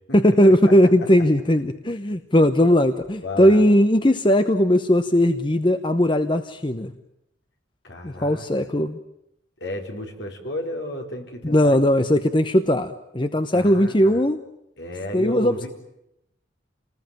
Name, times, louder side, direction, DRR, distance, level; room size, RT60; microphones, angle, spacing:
voice 1, 0.1-6.9 8.0-9.0 11.4-14.4 15.1-15.7, equal, 25° left, 9 dB, 0.9 m, -18 dB
voice 2, 3.2-3.6 7.8-8.7 9.6-11.8 13.5-14.2 14.8-15.7, left 1 dB, 65° left, 2 dB, 4.6 m, -32 dB
28.5 x 20.0 x 9.1 m, 0.84 s
head